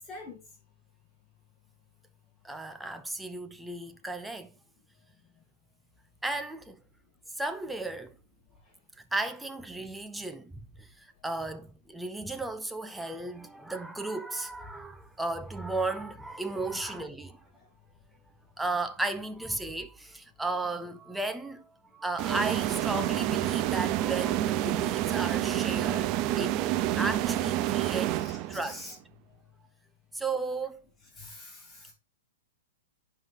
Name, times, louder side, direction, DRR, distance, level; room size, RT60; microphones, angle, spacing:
voice 1, 0.1-0.4 16.7-17.0 28.2-29.0 31.2-31.9, left 2 dB, 15° left, 3.0 m, -45 dB
voice 2, 2.4-4.5 6.2-6.8 7.4-8.2 9.0-17.4 18.6-26.6 27.0-28.1 28.5-29.0 30.1-30.9, right 2 dB, 5° right, 0.8 m, -35 dB
sound 1, 22.2-28.8, right 14 dB, 35° right, 0.5 m, -28 dB
9.7 x 5.5 x 3.7 m
hypercardioid pair, 140°, 0 cm